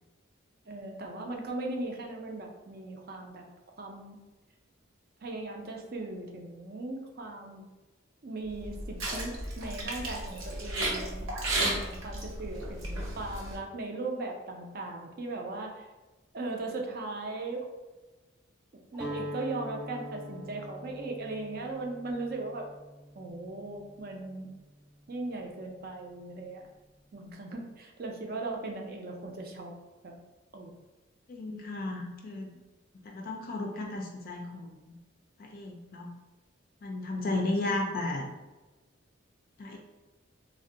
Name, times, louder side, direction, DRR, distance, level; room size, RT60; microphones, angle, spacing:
voice 1, 0.7-3.5 3.8-4.2 5.2-7.6 8.2-11.3 11.6-15.8 16.3-17.7 18.9-22.7 23.2-24.5 25.1-26.6 27.1-29.7 30.0-30.1 30.5-30.7 37.7-37.8, right 2 dB, 50° right, 2 dB, 0.4 m, -38 dB
sound 1, 8.5-13.6, right 1 dB, 90° right, 0.7 m, -34 dB
Guitar, 18.9-25.0, equal, 5° right, 0.6 m, -43 dB
voice 2, 31.3-32.5 33.0-35.0 35.4-36.1 36.8-38.3 39.6-39.8, left 2 dB, 45° left, 1 dB, 0.3 m, -34 dB
2.5 x 2.1 x 3.7 m, 1.1 s
head